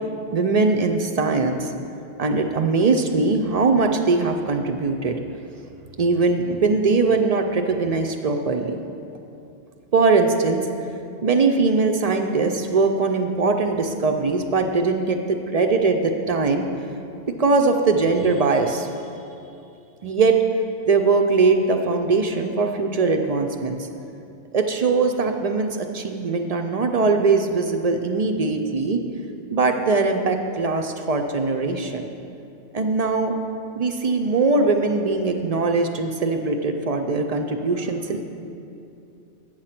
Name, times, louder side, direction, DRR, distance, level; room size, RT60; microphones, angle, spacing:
voice 1, 0.3-1.7 2.2-5.2 6.0-8.7 9.9-10.6 11.2-16.7 17.3-18.9 20.0-20.4 20.9-23.9 24.5-29.0 29.5-32.1 32.7-33.3 33.8-38.2, right 3 dB, 55° right, 4 dB, 0.4 m, -21 dB
8.8 x 6.4 x 5.8 m, 2.6 s
omnidirectional pair, 1.2 m